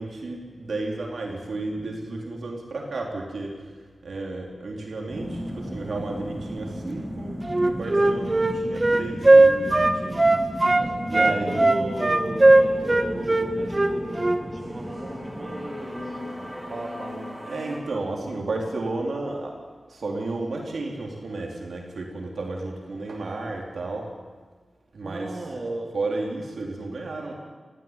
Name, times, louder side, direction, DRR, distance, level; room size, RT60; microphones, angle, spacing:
voice 1, 0.0-3.7 4.0-10.4 10.6-10.7 11.0-11.8 17.4-19.6 19.9-24.1 24.9-25.4 25.9-27.3, right 2 dB, 75° right, 0 dB, 4.1 m, -32 dB
sound 1, 5.1-17.8, equal, ahead, 5.7 m, -35 dB
Wind instrument woodwind instrument, 7.4-10.9 11.1-14.4, right 2 dB, 30° right, 1.7 m, -18 dB
voice 2, 10.7-16.2 16.7-17.4 18.1-18.2 25.0-25.9, right 2 dB, 50° right, -1 dB, 3.6 m, -35 dB
19.0 x 15.0 x 9.4 m, 1.5 s
wide cardioid pair, 70°, 0 cm